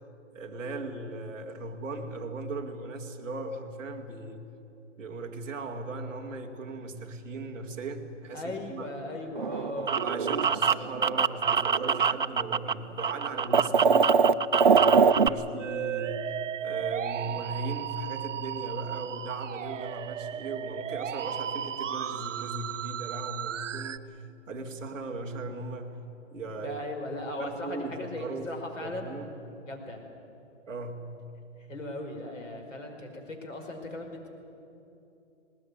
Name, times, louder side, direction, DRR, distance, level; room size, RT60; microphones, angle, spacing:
voice 1, 0.3-4.4 5.0-8.9 9.8-14.1 14.7-16.3 16.6-25.9 26.3-26.8 27.4-28.6 28.8-29.3 30.7-31.1, right 3 dB, 5° right, -7 dB, 0.8 m, -38 dB
voice 2, 8.3-10.0 15.2-15.4 26.6-29.1 29.7-30.0 31.7-34.3, left 1 dB, 85° left, 4 dB, 5.3 m, -38 dB
sound 1, 9.4-12.7 13.0-15.3, right 5 dB, 45° right, 0.4 m, -22 dB
Musical instrument, 15.6-24.0, right 10 dB, 75° right, 0.7 m, -35 dB
20.0 x 19.0 x 9.7 m, 2.9 s
hypercardioid pair, 180°, 37 cm